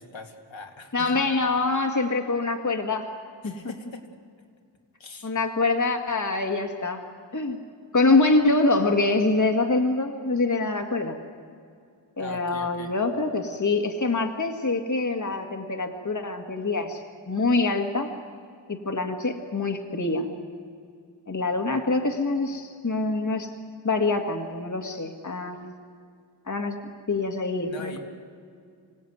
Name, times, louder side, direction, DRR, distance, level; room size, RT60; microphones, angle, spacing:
voice 1, 0.0-1.2 3.4-4.1 5.0-5.3 12.2-12.9 27.7-28.0, left 3 dB, 75° left, 2 dB, 2.5 m, -41 dB
voice 2, 0.9-3.0 3.4-3.7 5.2-7.0 7.3-7.6 7.9-11.2 12.2-17.0 17.3-18.1 18.7-20.3 21.3-23.5 23.8-25.7 26.5-26.8 27.1-28.0, left 3 dB, 40° left, 5 dB, 1.9 m, -25 dB
26.5 x 17.0 x 9.5 m, 2.3 s
wide cardioid pair, 75°, 46 cm